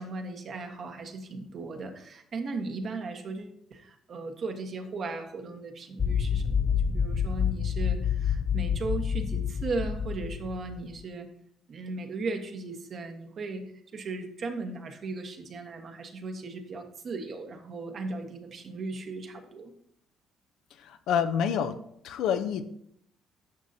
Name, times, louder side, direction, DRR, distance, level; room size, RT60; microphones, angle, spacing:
voice 1, 0.0-11.3 11.7-13.6 13.9-19.7, right 3 dB, 50° right, 5 dB, 1.3 m, -37 dB
sound 1, 6.0-10.8, left 7 dB, 35° left, 0.4 m, -28 dB
voice 2, 20.8-21.8 22.0-22.6, left 8 dB, 80° left, 8 dB, 0.7 m, -27 dB
11.0 x 6.3 x 2.8 m, 0.71 s
cardioid pair, 95°, 0 cm